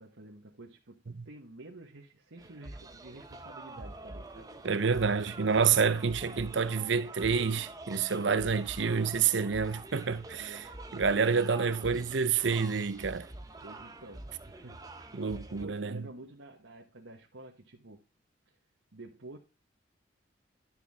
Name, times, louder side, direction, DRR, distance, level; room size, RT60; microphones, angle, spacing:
voice 1, 0.0-4.5 10.3-10.7 13.6-15.2 15.6-18.0 18.5-18.6 18.9-19.4, right 2 dB, 85° right, 1.3 m, -50 dB
sound 1, 2.4-15.6, right 2 dB, 20° right, 0.8 m, -46 dB
voice 2, 4.6-10.2 10.9-13.3 15.1-16.0, right 5 dB, 70° right, 0.7 m, -28 dB
11.5 x 5.9 x 3.5 m
head